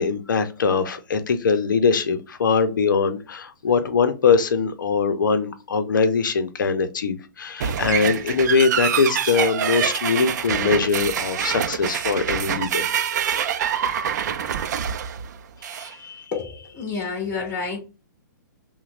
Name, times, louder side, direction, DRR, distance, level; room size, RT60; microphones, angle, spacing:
voice 1, 0.0-12.9 15.6-16.3, left 5 dB, 75° left, 11 dB, 0.7 m, -22 dB
sound 1, 7.6-15.9, right 8 dB, 60° right, 0.5 m, -25 dB
voice 2, 16.3-17.8, left 5 dB, 20° left, 0 dB, 2.1 m, -29 dB
5.7 x 2.2 x 2.5 m, 0.31 s
hypercardioid pair, 130°, 11 cm